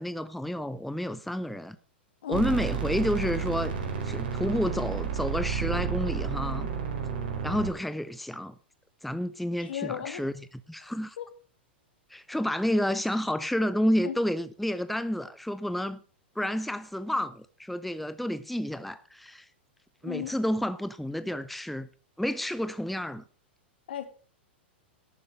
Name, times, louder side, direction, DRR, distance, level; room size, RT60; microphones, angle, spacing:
voice 1, 0.0-1.8 2.3-3.7 4.0-6.7 7.4-8.5 9.0-11.2 12.1-16.0 16.4-19.5 20.0-21.9 22.2-23.2, equal, ahead, 0.6 m, -30 dB
sound 1, 2.3-7.7, right 6 dB, 60° right, 4.2 m, -31 dB
voice 2, 9.7-10.2 11.2-11.3 14.0-14.1 20.0-20.4 23.9-24.1, left 10 dB, 65° left, 2.5 m, -34 dB
12.0 x 8.8 x 6.4 m
figure-of-eight pair, 100°, 6 cm